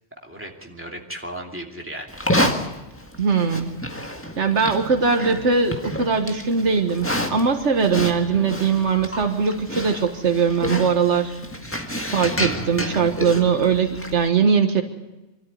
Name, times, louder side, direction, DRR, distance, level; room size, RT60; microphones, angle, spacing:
voice 1, 0.2-2.6, right 1 dB, 10° right, 1 dB, 2.7 m, -36 dB
Livestock farm animals working animals, 2.1-14.3, left 1 dB, 10° left, 1.7 m, -29 dB
voice 2, 3.2-3.7 4.4-11.3 12.1-14.8, right 5 dB, 90° right, 5 dB, 1.7 m, -20 dB
25.0 x 13.0 x 9.3 m, 1.0 s
omnidirectional pair, 1.2 m